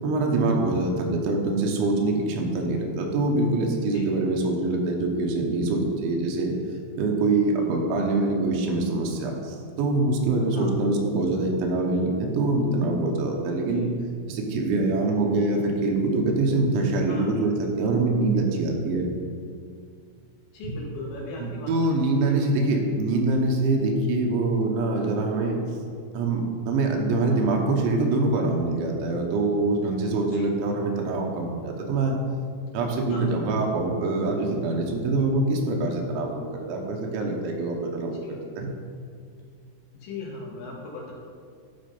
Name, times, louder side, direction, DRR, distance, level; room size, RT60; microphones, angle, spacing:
voice 1, 0.0-6.6 6.9-13.9 14.3-19.1 20.6-20.8 21.4-25.6 26.1-26.4 26.7-32.2 32.7-38.7, right 2 dB, 75° right, 1 dB, 3.1 m, -24 dB
voice 2, 20.5-21.7 22.0-22.5 27.3-27.4 30.3-30.5 33.1-33.2 38.2-38.4 39.9-41.1, left 3 dB, 70° left, -2 dB, 3.4 m, -39 dB
12.0 x 4.3 x 5.3 m, 2.2 s
omnidirectional pair, 5.9 m